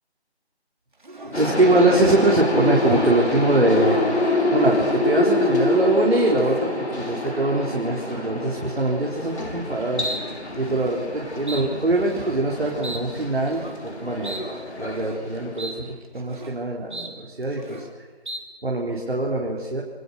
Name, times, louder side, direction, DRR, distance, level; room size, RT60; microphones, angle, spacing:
sound 1, 1.0-1.4 1.9-2.3 2.8-3.2 3.6-4.0 4.5-5.0 5.3-5.8 6.2-6.7 7.2-7.5 8.0-8.3 9.2-9.6 10.0-10.2 10.5-11.0 11.5-11.6 12.0-12.4 12.8-13.0 13.4-13.8 14.2-14.4 14.8-15.2 15.6-15.8 16.0-16.6 16.9-17.1 17.4-17.9 18.2-18.4, right 2 dB, 45° right, 3.5 m, -38 dB
sound 2, 1.3-15.9, left 1 dB, 85° left, 7.5 m, -26 dB
voice 1, 1.3-10.1 10.6-14.4 14.8-15.9 16.1-17.8 18.6-19.8, right 2 dB, 65° right, -1 dB, 4.1 m, -23 dB
26.0 x 22.5 x 6.9 m, 1.4 s
figure-of-eight pair, 175°, 33 cm